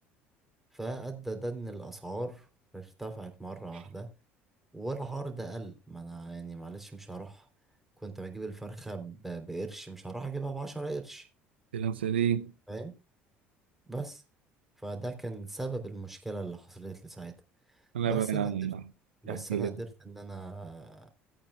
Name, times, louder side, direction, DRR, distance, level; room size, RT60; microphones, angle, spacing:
voice 1, 0.7-2.5 2.7-4.1 4.7-7.5 8.0-11.3 12.7-12.9 13.9-14.2 14.8-17.3 18.1-18.5 19.2-21.1, right 2 dB, 5° right, 3.3 m, -38 dB
voice 2, 11.7-12.5 17.9-18.8 19.3-19.7, right 9 dB, 90° right, 0.5 m, -29 dB
17.5 x 8.8 x 2.3 m
hypercardioid pair, 65°, 6 cm